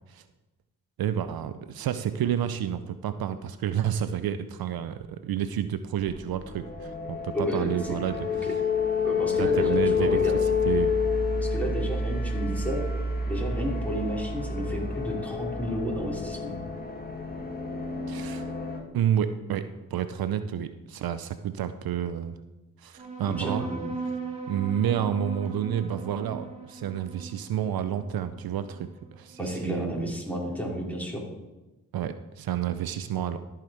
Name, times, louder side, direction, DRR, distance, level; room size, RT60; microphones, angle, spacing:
voice 1, 1.0-8.3 9.4-10.2 10.6-10.9 18.1-18.5 18.9-22.3 22.8-23.7 24.5-29.9 31.9-33.4, right 9 dB, 75° right, 11 dB, 0.6 m, -30 dB
sound 1, 6.0-18.8, left 5 dB, 25° left, 1.5 m, -29 dB
voice 2, 7.3-7.9 8.3-8.5 9.0-10.4 11.5-12.8 13.3-16.6 23.4-23.9 29.4-31.2, equal, 5° left, -3 dB, 3.7 m, -31 dB
sound 2, 23.0-29.9, right 4 dB, 20° right, 3.0 m, -39 dB
13.0 x 5.1 x 4.5 m, 1.1 s
supercardioid pair, 40°, 37 cm